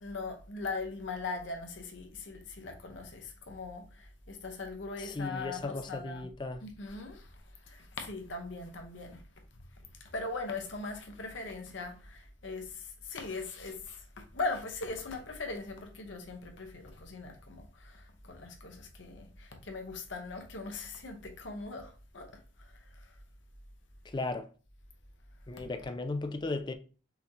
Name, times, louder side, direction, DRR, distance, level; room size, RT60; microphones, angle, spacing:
voice 1, 0.0-6.3 6.6-7.3 7.7-9.2 10.1-14.0 14.3-22.3, left 3 dB, 80° left, 0.9 m, -40 dB
voice 2, 5.0-6.6 24.0-24.5 25.5-26.7, left 2 dB, 25° left, 0.4 m, -36 dB
5.6 x 2.7 x 2.9 m
head